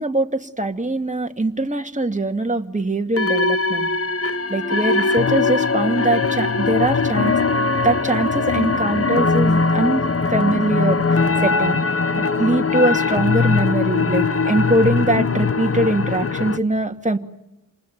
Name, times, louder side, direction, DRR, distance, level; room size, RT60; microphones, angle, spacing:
voice 1, 0.0-3.9 4.5-7.3 7.8-10.0 10.3-11.8 12.1-17.2, right 2 dB, 20° right, 4 dB, 2.3 m, -22 dB
sound 1, 3.2-16.6, left 4 dB, 45° left, 1.1 m, -20 dB
28.5 x 20.0 x 9.5 m, 0.95 s
cardioid pair, 50°, 33 cm